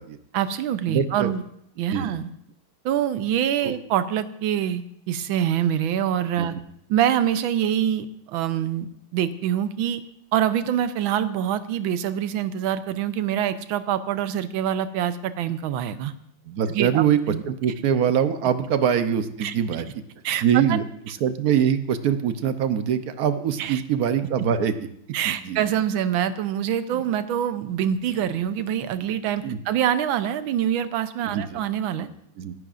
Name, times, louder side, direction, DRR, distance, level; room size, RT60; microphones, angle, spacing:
voice 1, 0.3-1.4 1.8-2.3 2.8-6.5 6.9-10.0 10.3-16.1 16.7-17.4 19.4-19.5 20.2-20.8 23.6-23.8 25.1-32.1, right 10 dB, 85° right, 12 dB, 1.5 m, -25 dB
voice 2, 0.9-1.3 1.9-2.1 3.6-3.7 6.4-6.5 16.5-19.9 20.4-24.7 25.2-25.7 26.9-27.0 29.4-29.6 31.3-31.5 32.0-32.1 32.4-32.5, right 8 dB, 60° right, 10 dB, 1.1 m, -23 dB
25.5 x 11.0 x 2.5 m, 0.72 s
omnidirectional pair, 2.1 m